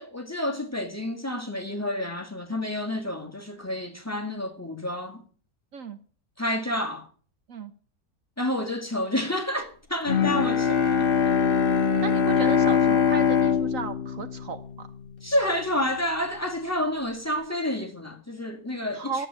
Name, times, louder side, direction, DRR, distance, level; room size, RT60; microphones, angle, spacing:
voice 1, 0.0-5.2 6.4-7.1 8.4-11.1 15.2-19.3, left 1 dB, 10° left, 2.1 m, -29 dB
Bowed string instrument, 10.1-15.3, left 6 dB, 40° left, 1.2 m, -23 dB
voice 2, 12.0-14.9 18.9-19.3, right 5 dB, 60° right, 1.3 m, -34 dB
13.0 x 8.3 x 9.0 m
omnidirectional pair, 1.6 m